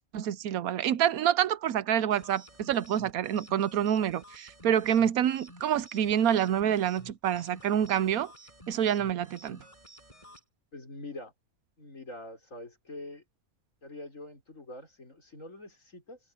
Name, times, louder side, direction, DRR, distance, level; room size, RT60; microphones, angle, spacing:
voice 1, 0.1-8.3 8.7-9.6, right 9 dB, 80° right, 1.2 m, -27 dB
sound 1, 2.1-10.4, equal, 20° left, 7.5 m, -52 dB
voice 2, 10.7-11.3 11.8-13.2 13.8-16.2, left 2 dB, 60° left, 5.8 m, -44 dB
omnidirectional pair, 1.5 m